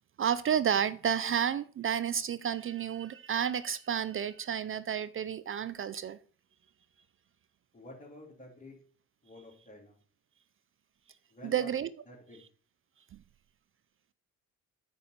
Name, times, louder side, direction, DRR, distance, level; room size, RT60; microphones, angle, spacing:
voice 1, 0.2-6.2 11.4-11.9, right 8 dB, 30° right, 0.4 m, -31 dB
voice 2, 7.7-8.8 9.2-10.0 11.3-11.7 12.1-12.4, left 2 dB, 20° left, 3.1 m, -50 dB
9.0 x 4.2 x 6.6 m
figure-of-eight pair, 50°, 43 cm